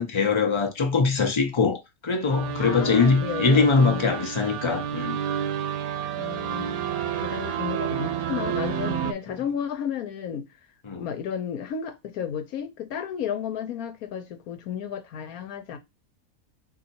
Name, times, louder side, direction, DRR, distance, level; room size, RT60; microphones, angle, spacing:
voice 1, 0.0-5.2 9.3-9.4 10.9-11.1, left 4 dB, 25° left, 0.6 m, -22 dB
sound 1, 2.3-9.1, right 9 dB, 85° right, 1.1 m, -30 dB
voice 2, 2.6-4.3 6.2-10.5 11.0-15.8, left 8 dB, 80° left, 1.2 m, -33 dB
4.1 x 2.8 x 4.1 m
omnidirectional pair, 1.5 m